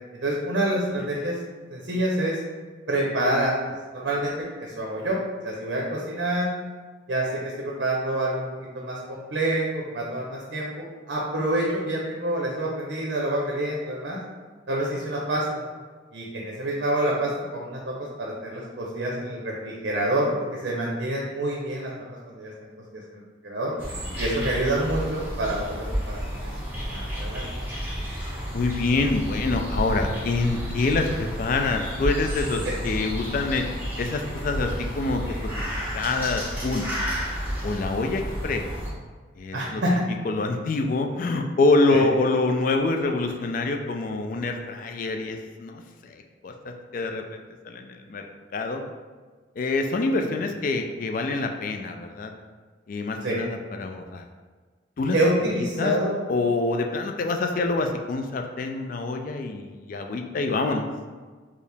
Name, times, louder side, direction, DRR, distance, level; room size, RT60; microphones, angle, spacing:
voice 1, 0.2-1.4 1.7-2.4 2.9-3.6 3.9-5.2 5.4-6.5 7.1-14.2 14.7-15.6 16.1-20.3 20.6-21.9 22.3-22.5 22.9-23.7 24.2-26.5 26.9-27.5 32.6-32.7 39.5-40.0 41.9-42.0 53.2-53.4 55.1-56.2, right 1 dB, 65° right, -3 dB, 0.6 m, -27 dB
sound 1, 23.8-38.9, equal, 10° right, 0.7 m, -31 dB
voice 2, 28.5-33.7 34.0-35.5 35.9-36.9 37.6-38.6 39.4-39.8 40.2-48.3 48.5-48.8 49.6-52.3 52.9-54.2 55.0-55.2 55.5-55.9 56.3-60.8, left 3 dB, 45° left, 4 dB, 0.3 m, -26 dB
4.5 x 2.0 x 3.3 m, 1.4 s
head